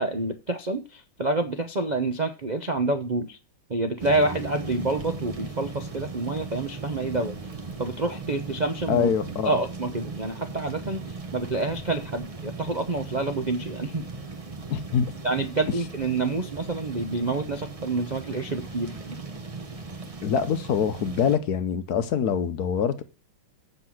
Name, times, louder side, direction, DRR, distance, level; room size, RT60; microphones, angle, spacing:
voice 1, 0.0-3.4 3.7-7.4 7.8-9.1 9.4-14.0 15.2-19.2, right 2 dB, 85° right, 0.4 m, -28 dB
sound 1, 4.0-21.4, right 3 dB, 30° right, 0.7 m, -37 dB
voice 2, 8.9-9.5 14.7-15.1 20.2-23.0, left 7 dB, 60° left, 1.2 m, -24 dB
8.1 x 6.6 x 5.9 m
omnidirectional pair, 2.2 m